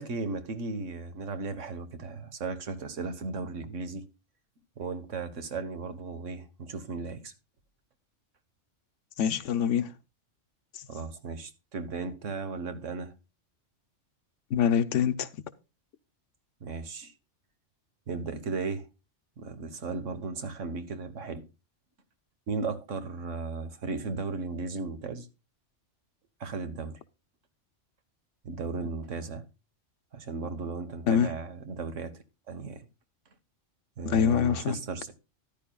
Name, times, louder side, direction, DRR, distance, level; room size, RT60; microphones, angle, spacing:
voice 1, 0.0-4.1 4.8-7.3 10.9-13.1 16.6-17.1 18.1-18.9 19.4-21.4 22.5-25.3 26.4-27.0 28.4-29.4 30.1-32.9 34.0-35.1, right 4 dB, 90° right, 1.6 m, -36 dB
voice 2, 9.2-9.9 10.7-10.9 14.5-15.3 31.1-31.3 34.1-34.8, left 8 dB, 85° left, 1.2 m, -25 dB
13.5 x 10.5 x 2.3 m
omnidirectional pair, 1.2 m